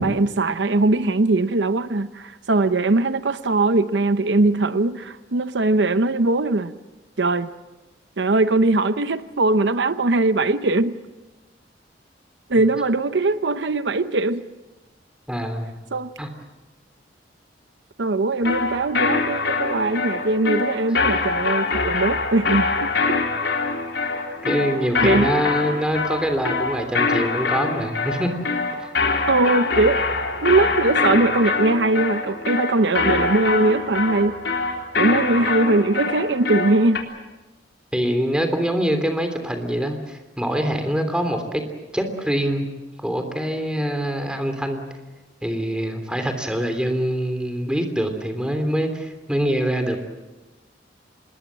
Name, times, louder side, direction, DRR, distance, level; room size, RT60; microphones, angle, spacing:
voice 1, 0.0-6.7 7.2-7.5 8.2-11.0 12.5-14.4 15.9-16.1 18.0-23.2 25.0-25.3 29.3-30.0 30.4-34.4 35.0-37.0, right 2 dB, 80° right, 0.8 m, -20 dB
voice 2, 15.3-15.7 16.2-16.3 24.4-28.5 28.8-28.9 37.9-41.6 41.9-42.7 43.0-44.8 45.4-50.0, equal, 5° right, 3.2 m, -24 dB
sound 1, 18.4-37.0, left 4 dB, 80° left, 3.6 m, -24 dB
26.0 x 21.5 x 7.6 m
head